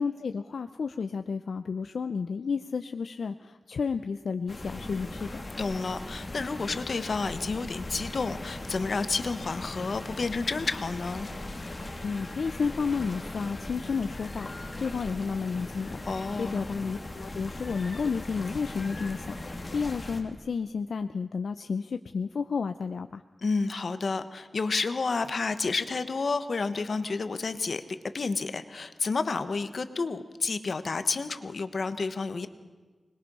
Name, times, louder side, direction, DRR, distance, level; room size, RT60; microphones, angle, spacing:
voice 1, 0.0-5.4 12.0-16.0 16.4-23.2, left 5 dB, 90° left, 9 dB, 0.6 m, -32 dB
sound 1, 4.5-20.2, left 2 dB, 35° left, 2.7 m, -39 dB
voice 2, 5.6-11.3 16.1-16.6 23.4-27.8 28.1-32.5, left 4 dB, 65° left, 10 dB, 1.2 m, -30 dB
25.0 x 21.0 x 5.5 m, 1.3 s
wide cardioid pair, 95°, 0 cm